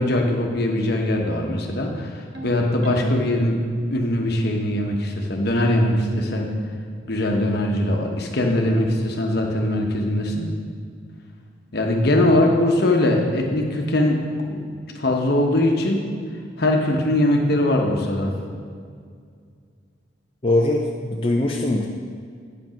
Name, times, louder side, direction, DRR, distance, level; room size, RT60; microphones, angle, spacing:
voice 1, 0.0-2.2 2.4-3.6 3.9-6.5 7.1-10.5 11.7-14.2 14.5-14.7 14.9-16.0 16.6-18.3, left 1 dB, 55° left, 1 dB, 1.1 m, -21 dB
Ringtone, 2.3-3.5, left 2 dB, 60° right, 1.2 m, -37 dB
voice 2, 20.4-21.9, left 1 dB, 30° left, -1 dB, 0.5 m, -21 dB
9.0 x 5.3 x 5.8 m, 2.1 s
head